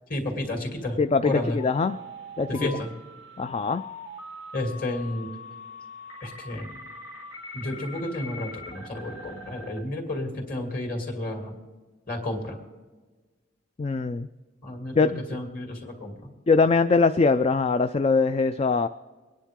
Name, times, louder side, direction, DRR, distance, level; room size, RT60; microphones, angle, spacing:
voice 1, 0.1-1.0 1.2-1.6 2.5-2.9 4.5-5.3 6.2-6.7 7.5-11.5 12.1-12.6 14.6-16.3, left 1 dB, 45° left, 2 dB, 2.7 m, -31 dB
voice 2, 1.0-2.0 2.4-2.7 3.4-3.8 13.8-14.3 15.0-15.2 16.5-18.9, left 4 dB, 30° left, 10 dB, 0.3 m, -22 dB
sound 1, 1.6-9.8, left 2 dB, 85° left, 3.3 m, -42 dB
24.5 x 10.0 x 3.7 m, 1.3 s
head